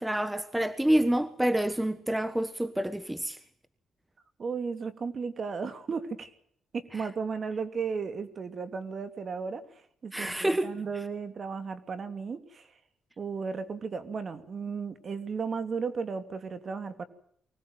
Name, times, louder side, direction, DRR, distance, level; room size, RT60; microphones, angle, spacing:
voice 1, 0.0-3.4 10.1-10.7, right 1 dB, 5° right, 1.3 m, -27 dB
voice 2, 4.4-6.3 6.7-9.6 10.0-12.7 13.2-17.0, right 5 dB, 45° right, 2.9 m, -34 dB
24.5 x 19.0 x 9.3 m
cardioid pair, 90°, 0 cm